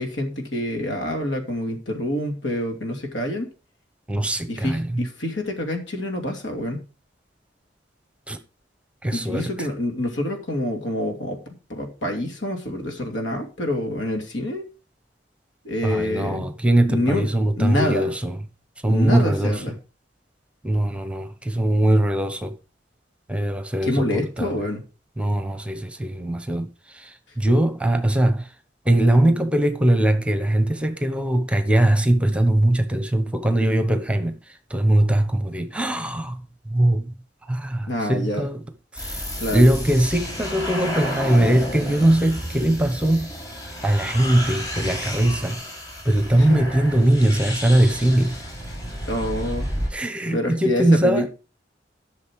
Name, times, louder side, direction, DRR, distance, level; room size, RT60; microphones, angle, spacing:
voice 1, 0.0-3.5 4.5-6.8 9.1-11.4 11.7-14.6 15.6-16.5 16.9-17.3 17.6-18.1 18.9-19.8 23.8-24.8 37.9-38.5 39.4-39.6 46.4-46.6 49.0-49.7 50.3-51.3, left 1 dB, 85° left, 2.8 m, -26 dB
voice 2, 4.1-5.0 8.3-8.4 9.0-9.7 15.8-18.4 18.8-19.6 20.6-22.5 23.3-24.5 25.2-26.7 26.9-28.5 28.8-34.4 34.7-37.1 37.5-38.6 38.9-39.2 39.5-43.3 43.8-45.6 46.0-48.4 49.9-51.3, right 1 dB, 5° right, 1.0 m, -21 dB
sound 1, 39.0-49.9, equal, 20° left, 6.1 m, -31 dB
12.0 x 6.4 x 4.7 m
head